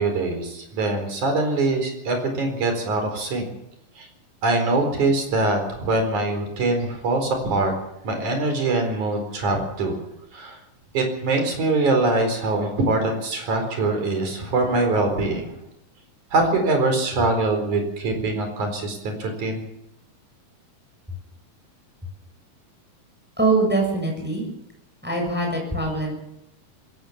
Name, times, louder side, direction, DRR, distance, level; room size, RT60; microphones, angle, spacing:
voice 1, 0.0-3.5 4.0-4.1 4.4-7.7 8.0-10.0 10.3-10.6 10.9-15.6 16.3-19.7, right 2 dB, 60° right, 5 dB, 5.8 m, -23 dB
voice 2, 23.4-24.5 25.0-26.1, right 2 dB, 5° right, 0 dB, 7.3 m, -23 dB
21.0 x 18.0 x 7.3 m, 0.82 s
omnidirectional pair, 4.0 m